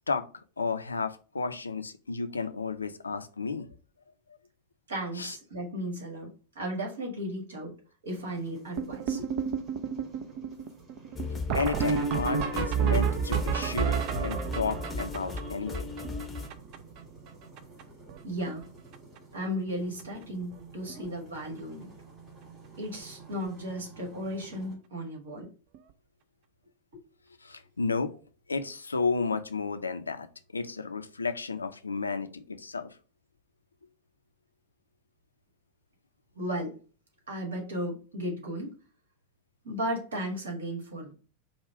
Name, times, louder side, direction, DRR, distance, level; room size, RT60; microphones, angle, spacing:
voice 1, 0.6-3.7 5.2-5.4 11.5-15.9 27.4-28.1 28.5-30.3 30.5-32.9, left 4 dB, 75° left, 9 dB, 0.5 m, -32 dB
voice 2, 4.9-7.8 8.0-9.3 18.2-18.7 19.3-21.9 22.8-25.5 36.4-36.8 37.3-38.7 39.6-41.1, equal, 65° right, 0 dB, 1.8 m, -35 dB
sound 1, 8.1-24.8, right 4 dB, 20° right, 2.3 m, -52 dB
sound 2, 8.8-17.0 17.3-17.4 17.6-17.8 18.1-18.6 18.9-19.2 20.0-20.1 20.5-20.6 20.9-21.1 23.3-23.4 25.7-25.8, right 7 dB, 45° right, 0.5 m, -31 dB
sound 3, 11.1-16.5, left 3 dB, 15° left, 0.8 m, -36 dB
4.9 x 2.3 x 4.5 m, 0.37 s
figure-of-eight pair, 90°, 0 cm